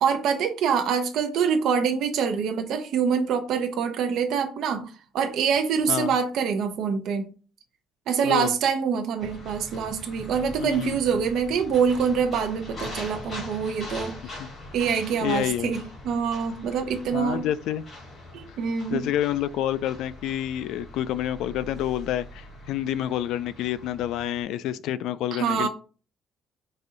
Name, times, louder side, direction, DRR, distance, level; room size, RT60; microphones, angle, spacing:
voice 1, 0.0-7.3 8.1-14.4 14.7-17.4 18.3-19.1 25.3-25.7, right 6 dB, 60° right, 0.6 m, -25 dB
sound 1, 9.2-24.4, left 2 dB, 30° left, 1.9 m, -42 dB
voice 2, 10.6-11.0 14.4-14.5 15.2-15.7 17.1-17.8 18.9-25.7, left 12 dB, 75° left, 0.3 m, -28 dB
4.1 x 2.6 x 4.8 m
cardioid pair, 175°, 0 cm